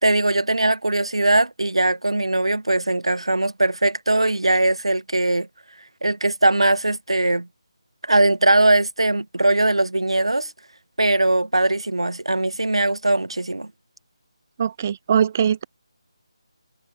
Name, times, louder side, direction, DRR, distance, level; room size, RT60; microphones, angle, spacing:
voice 1, 0.0-5.5 6.0-7.5 8.0-10.5 11.0-13.7, right 2 dB, 70° right, 1.0 m, -20 dB
voice 2, 14.6-15.6, right 8 dB, 25° right, 0.4 m, -21 dB
figure-of-eight pair, 155°, 3 cm